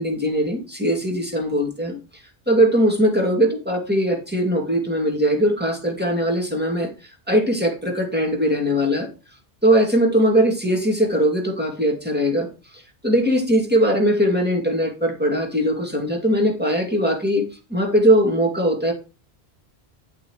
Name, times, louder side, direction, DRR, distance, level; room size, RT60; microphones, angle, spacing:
voice 1, 0.0-2.0 2.5-9.1 9.6-12.5 12.7-18.9, equal, 10° right, 0 dB, 2.4 m, -20 dB
9.8 x 8.6 x 3.1 m, 0.32 s
omnidirectional pair, 1.1 m